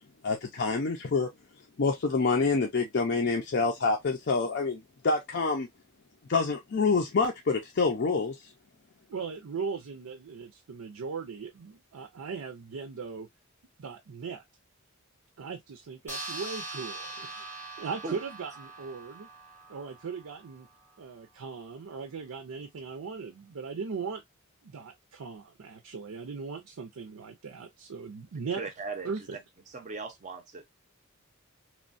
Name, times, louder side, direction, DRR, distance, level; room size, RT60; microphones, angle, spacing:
voice 1, 0.2-1.3 1.8-5.7 6.3-8.3, left 4 dB, 50° left, 0.5 m, -27 dB
voice 2, 9.1-13.3 13.8-14.4 15.4-17.4 17.8-19.3 19.7-20.7 21.0-24.2 24.6-28.6 29.0-29.2, right 5 dB, 85° right, 0.5 m, -38 dB
sound 1, 16.1-20.9, right 2 dB, 10° left, 0.7 m, -42 dB
voice 3, 28.6-29.4 29.7-30.6, right 4 dB, 35° right, 0.5 m, -38 dB
3.0 x 2.2 x 2.4 m
head